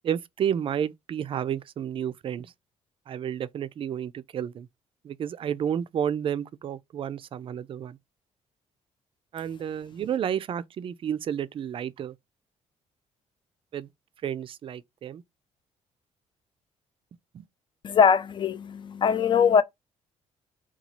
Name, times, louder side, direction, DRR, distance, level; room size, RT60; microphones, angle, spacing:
voice 1, 0.0-2.5 3.1-4.7 5.0-8.0 9.3-12.2 13.7-13.9 14.2-15.2 17.3-17.5, right 9 dB, 45° right, 0.4 m, -31 dB
voice 2, 17.8-19.6, left 7 dB, 40° left, 0.4 m, -21 dB
2.9 x 2.3 x 4.1 m
cardioid pair, 120°, 13 cm